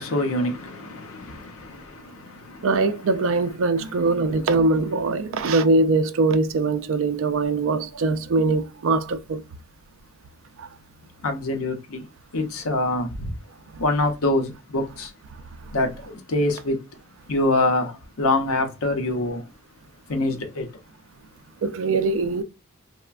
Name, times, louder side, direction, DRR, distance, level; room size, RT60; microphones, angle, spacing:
voice 1, 0.0-2.7 11.2-12.0 12.3-13.4 13.8-15.1 15.7-16.8 17.3-19.5 20.1-20.7, left 2 dB, 85° left, 0.6 m, -25 dB
voice 2, 2.6-9.4 10.6-10.7 15.6-15.8 21.6-22.4, right 3 dB, 65° right, 0.4 m, -22 dB
3.2 x 2.1 x 2.3 m
head